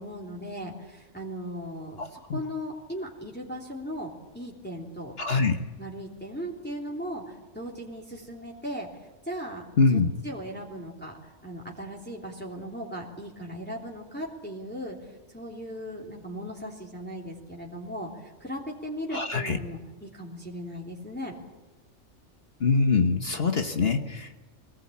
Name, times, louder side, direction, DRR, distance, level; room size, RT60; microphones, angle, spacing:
voice 1, 0.0-5.1 5.8-8.9 9.2-9.6 9.9-11.1 11.4-21.3, equal, 10° left, -3 dB, 3.3 m, -38 dB
voice 2, 2.0-2.4 5.2-5.6 9.8-10.1 19.1-19.6 22.6-24.4, left 4 dB, 55° left, 5 dB, 1.4 m, -24 dB
23.5 x 19.5 x 8.6 m, 1.2 s
omnidirectional pair, 1.3 m